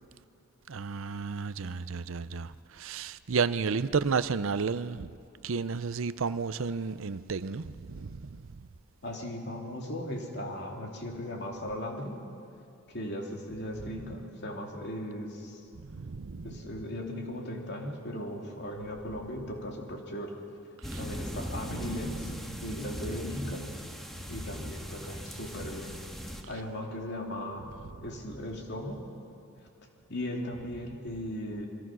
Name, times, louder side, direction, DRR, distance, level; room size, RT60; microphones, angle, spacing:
voice 1, 0.7-5.1 5.4-8.7 15.7-16.6 20.8-21.0 22.5-22.6, right 5 dB, 70° right, 0.6 m, -32 dB
voice 2, 9.0-12.2 12.9-15.6 16.4-20.4 20.9-22.3 22.6-23.7 24.3-26.0 26.5-27.7 28.0-29.0 30.1-31.7, left 1 dB, 50° left, 3.1 m, -37 dB
sound 1, 20.8-26.4, equal, ahead, 1.7 m, -39 dB
28.5 x 22.5 x 6.2 m
head